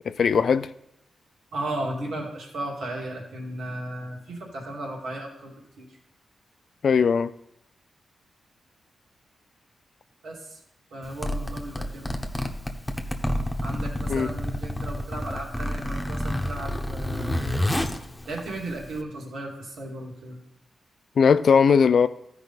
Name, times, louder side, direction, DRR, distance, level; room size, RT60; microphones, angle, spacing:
voice 1, 0.0-0.7 6.8-7.3 14.1-14.3 21.2-22.1, left 6 dB, 65° left, 0.4 m, -19 dB
voice 2, 1.5-5.9 10.2-10.6 10.9-12.1 13.6-17.5 18.3-20.4, right 1 dB, 85° right, 2.5 m, -35 dB
Zipper (clothing), 11.0-19.0, left 1 dB, 10° left, 1.0 m, -29 dB
14.0 x 5.1 x 4.1 m
cardioid pair, 70°, 0 cm